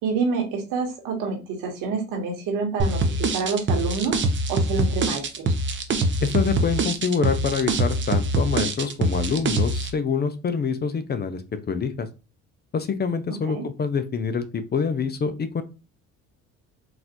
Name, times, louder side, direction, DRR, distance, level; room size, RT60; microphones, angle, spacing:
voice 1, 0.0-4.2 4.5-5.5 13.5-13.6, right 4 dB, 80° right, 3 dB, 1.3 m, -27 dB
sound 1, 2.8-9.9, right 2 dB, 35° right, 0.7 m, -24 dB
voice 2, 6.2-11.4 11.7-12.1 12.7-15.6, left 5 dB, 30° left, 10 dB, 0.5 m, -26 dB
3.9 x 2.5 x 2.9 m, 0.29 s
supercardioid pair, 90°, 32 cm